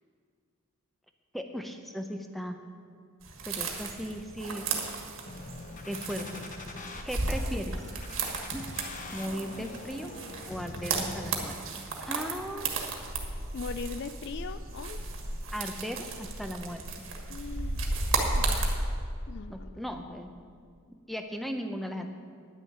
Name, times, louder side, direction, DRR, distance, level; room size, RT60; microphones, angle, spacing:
voice 1, 1.3-2.6 3.5-5.0 5.9-6.5 7.0-7.8 8.5-8.8 9.1-10.1 10.5-12.7 15.5-17.1 19.5-20.4 20.9-22.1, equal, ahead, 5 dB, 0.5 m, -37 dB
sound 1, 3.2-18.8, right 3 dB, 60° right, 1.6 m, -34 dB
sound 2, 5.3-7.0 7.8-11.8 12.3-13.2, left 2 dB, 35° left, 0.7 m, -43 dB
voice 2, 7.3-7.6 13.5-15.0 17.3-17.9 18.3-18.8 19.3-19.8, left 5 dB, 50° left, 12 dB, 0.3 m, -40 dB
10.5 x 6.6 x 8.5 m, 2.2 s
head